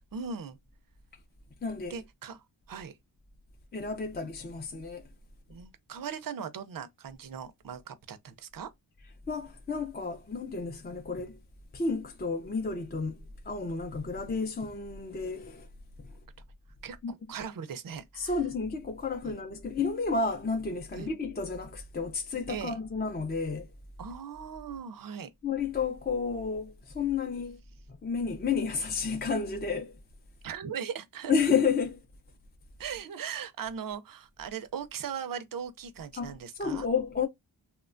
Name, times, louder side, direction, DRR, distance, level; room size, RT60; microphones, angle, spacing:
voice 1, 0.1-0.6 1.9-3.0 5.5-8.7 16.8-18.4 19.2-19.3 20.9-21.1 22.5-22.8 24.0-25.3 30.4-31.3 32.8-36.9, right 7 dB, 50° right, 0.5 m, -39 dB
voice 2, 1.6-2.0 3.7-5.0 9.3-11.4 11.7-13.2 13.5-15.7 17.0-17.1 18.2-23.7 25.4-27.6 28.0-29.9 31.3-32.0 36.2-37.3, left 5 dB, 25° left, 0.4 m, -31 dB
2.9 x 2.1 x 2.4 m
wide cardioid pair, 95°, 46 cm